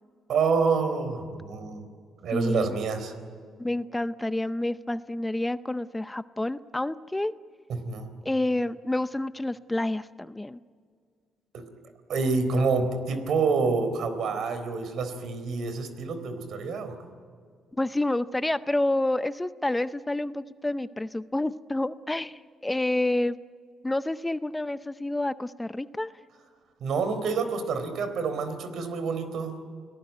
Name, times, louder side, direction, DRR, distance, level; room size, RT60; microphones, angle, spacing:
voice 1, 0.3-1.9 2.2-3.1 7.7-8.1 11.5-11.6 12.1-17.0 26.8-29.6, right 4 dB, 70° right, 10 dB, 3.9 m, -27 dB
voice 2, 2.3-2.8 3.6-7.3 8.2-10.6 17.8-23.4 23.8-26.1, left 1 dB, 10° left, 14 dB, 0.6 m, -28 dB
30.0 x 18.5 x 9.4 m, 2.1 s
cardioid pair, 90°, 0 cm